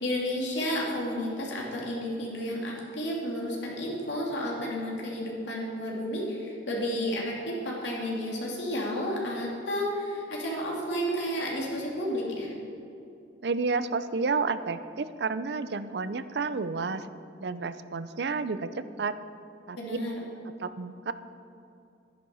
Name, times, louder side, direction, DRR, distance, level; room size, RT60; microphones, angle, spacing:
voice 1, 0.0-12.5 19.7-20.2, equal, 80° left, -3 dB, 3.0 m, -31 dB
voice 2, 13.4-17.1 17.4-19.1 19.7-19.8 20.6-21.1, right 4 dB, 65° right, 13 dB, 0.5 m, -30 dB
11.5 x 10.5 x 5.5 m, 2.6 s
head